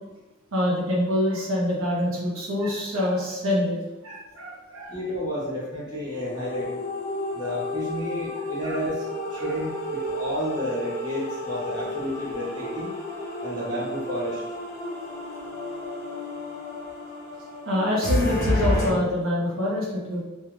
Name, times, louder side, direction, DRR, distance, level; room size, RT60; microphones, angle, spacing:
voice 1, 0.5-3.8 4.0-5.0 8.6-8.8 9.4-9.5 17.6-20.2, left 1 dB, 75° right, -4 dB, 0.9 m, -26 dB
voice 2, 4.9-6.7 7.3-12.9 13.4-14.4, equal, 20° right, -8 dB, 1.1 m, -31 dB
sound 1, 6.1-18.9, left 1 dB, 45° left, 0.9 m, -31 dB
3.3 x 3.1 x 2.3 m, 1.1 s
head